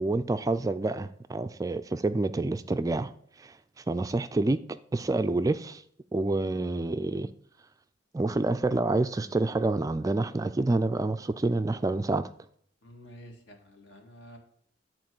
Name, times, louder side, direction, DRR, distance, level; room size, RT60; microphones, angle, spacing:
voice 1, 0.0-3.1 3.4-4.6 4.9-5.8 6.1-7.3 8.1-12.3, right 2 dB, 20° right, 0.3 m, -28 dB
voice 2, 12.8-14.4, equal, 65° left, 2.1 m, -50 dB
11.0 x 4.5 x 7.7 m
head